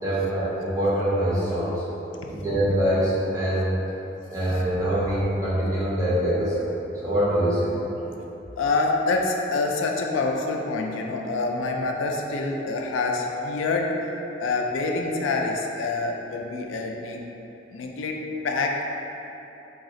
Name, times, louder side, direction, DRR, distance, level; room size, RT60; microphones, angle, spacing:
voice 1, 0.0-1.8 2.3-3.8 4.3-6.7 7.0-7.9, right 1 dB, 15° right, -10 dB, 0.9 m, -24 dB
voice 2, 8.5-14.0 14.4-17.2 17.7-18.9, left 3 dB, 90° left, 1 dB, 0.4 m, -26 dB
4.0 x 2.3 x 3.7 m, 3.0 s
head